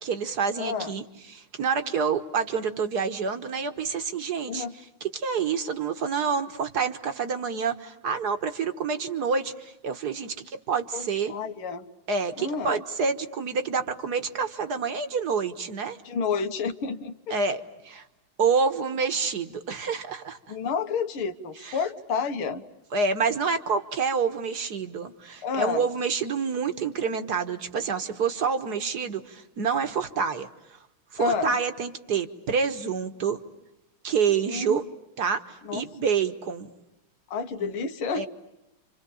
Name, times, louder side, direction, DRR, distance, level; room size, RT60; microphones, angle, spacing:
voice 1, 0.0-1.0 1.3-4.6 5.1-11.3 12.1-16.0 17.3-18.0 18.4-20.5 21.6-21.8 22.9-30.5 31.1-33.4 34.0-34.8 35.2-35.4 35.7-36.7 37.6-37.7 38.2-38.3, right 5 dB, 50° right, 8 dB, 1.7 m, -27 dB
voice 2, 0.6-0.9 4.5-4.7 10.9-11.9 12.4-12.8 16.0-17.4 20.5-22.6 25.4-25.9 31.2-31.6 34.5-34.8 35.6-35.9 37.3-38.3, left 5 dB, 75° left, 8 dB, 2.1 m, -30 dB
29.5 x 26.5 x 7.1 m, 0.95 s
omnidirectional pair, 2.3 m